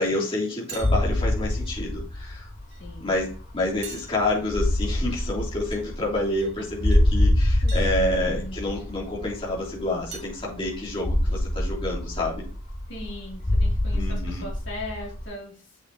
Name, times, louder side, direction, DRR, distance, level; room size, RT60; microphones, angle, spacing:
voice 1, 0.0-2.5 3.0-12.4 13.9-14.4, left 2 dB, 25° left, -7 dB, 3.6 m, -28 dB
sound 1, 0.7-1.0 1.6-1.7 2.7-2.8 3.8-4.5 5.7-5.8 6.3-6.5 6.9-7.0 7.7-7.9 9.3-9.4 10.1-10.4, right 6 dB, 50° right, 2.2 m, -42 dB
sound 2, 0.8-15.2, left 1 dB, 40° left, 2.3 m, -26 dB
voice 2, 2.7-3.1 7.6-8.8 12.9-15.8, left 1 dB, 55° left, -3 dB, 3.5 m, -39 dB
8.0 x 6.8 x 3.1 m, 0.39 s
head